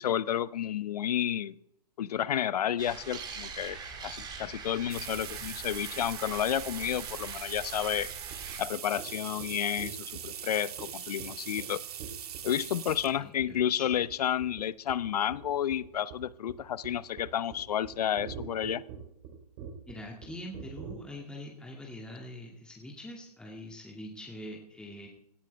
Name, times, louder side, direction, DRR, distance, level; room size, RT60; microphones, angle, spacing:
voice 1, 0.0-1.5 2.0-3.8 4.0-8.1 8.6-11.8 12.4-18.8, left 10 dB, 65° left, 19 dB, 0.7 m, -31 dB
sound 1, 2.8-8.6, right 5 dB, 20° right, 2.5 m, -43 dB
sound 2, 4.9-13.2 14.0-14.1 15.4-15.5 15.8-15.9 16.2-16.3, right 9 dB, 65° right, 1.6 m, -42 dB
sound 3, 8.0-8.1 8.3-8.5 9.0-9.1 9.4-9.5 9.8-10.4 10.8-10.9 11.2-11.3 11.6-11.7 12.0-12.5 12.9-13.1 13.4-13.6 13.9-14.2 14.4-14.6 14.9-20.9, right 7 dB, 45° right, 3.6 m, -44 dB
voice 2, 13.2-13.9 19.9-25.1, left 1 dB, 5° left, -1 dB, 2.3 m, -44 dB
17.5 x 13.5 x 3.4 m, 0.79 s
hypercardioid pair, 125°, 21 cm